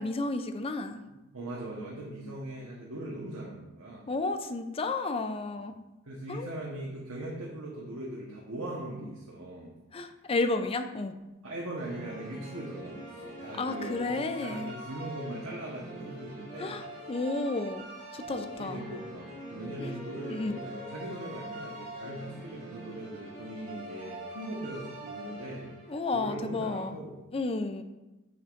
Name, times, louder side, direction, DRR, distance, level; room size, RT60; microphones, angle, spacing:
voice 1, 0.0-1.0 4.1-5.7 6.3-6.6 9.9-11.1 13.6-14.7 16.6-17.9 18.1-18.8 19.8-19.9 20.3-20.6 25.9-27.0 27.3-27.8, left 3 dB, 25° left, 8 dB, 0.5 m, -32 dB
voice 2, 1.1-4.1 6.1-9.8 11.4-16.8 18.2-25.7 26.1-27.1, right 1 dB, 90° right, -3 dB, 1.2 m, -40 dB
sound 1, 11.8-26.1, right 1 dB, 35° right, 2.3 m, -44 dB
7.9 x 7.7 x 2.6 m, 1.0 s
head